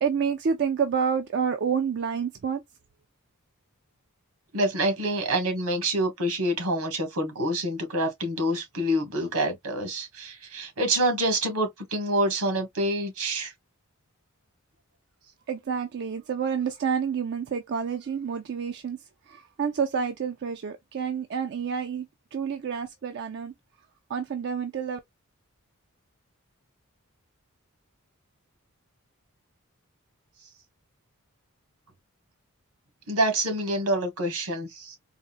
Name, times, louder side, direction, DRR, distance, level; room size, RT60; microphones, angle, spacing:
voice 1, 0.0-2.6 15.5-19.0 19.3-22.1 22.3-23.5 24.1-25.0, right 6 dB, 50° right, 0.4 m, -28 dB
voice 2, 4.5-13.5 33.1-35.0, right 1 dB, 80° right, 1.4 m, -27 dB
4.1 x 2.0 x 2.4 m
head